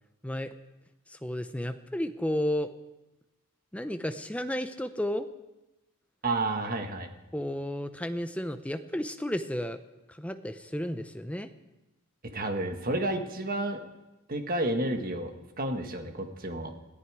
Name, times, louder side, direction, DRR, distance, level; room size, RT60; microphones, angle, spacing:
voice 1, 1.1-2.7 3.7-5.3 7.3-9.8 10.2-11.5, left 1 dB, 5° left, 9 dB, 0.7 m, -32 dB
voice 2, 6.2-7.1 12.2-13.8 14.3-15.3 15.6-16.7, right 2 dB, 40° right, 5 dB, 1.5 m, -30 dB
21.0 x 14.5 x 4.8 m, 1.0 s
head